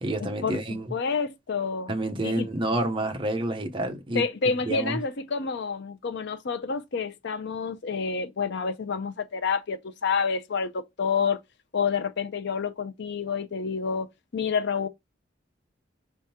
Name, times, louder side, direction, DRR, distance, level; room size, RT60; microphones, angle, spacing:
voice 1, 0.0-0.9 1.9-5.0, right 1 dB, 25° right, 0.8 m, -29 dB
voice 2, 0.9-1.9 2.2-2.5 4.1-11.4 11.7-14.1 14.3-14.9, left 5 dB, 65° left, 0.6 m, -28 dB
5.3 x 3.6 x 2.8 m
head